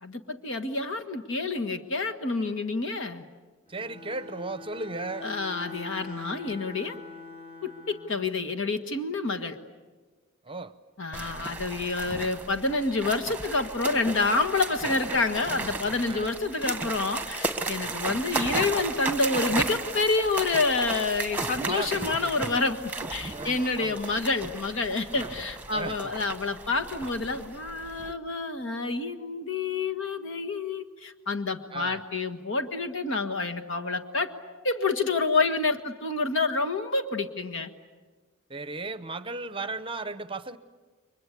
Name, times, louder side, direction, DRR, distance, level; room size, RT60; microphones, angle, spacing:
voice 1, 0.0-3.2 5.2-7.0 7.6-9.6 11.0-34.3 34.6-37.7, left 3 dB, 65° left, 7 dB, 1.6 m, -28 dB
Bowed string instrument, 3.7-8.2, left 3 dB, 30° left, 5.5 m, -43 dB
voice 2, 3.7-5.3 10.4-10.7 16.1-16.3 17.8-18.0 21.7-21.9 22.6-22.7 23.3-24.0 25.1-25.3 25.7-26.1 31.7-32.0 38.5-40.6, right 3 dB, 25° right, 13 dB, 0.8 m, -36 dB
sound 1, 11.1-28.1, right 3 dB, 10° right, 1.5 m, -35 dB
29.5 x 23.5 x 8.3 m, 1.4 s
head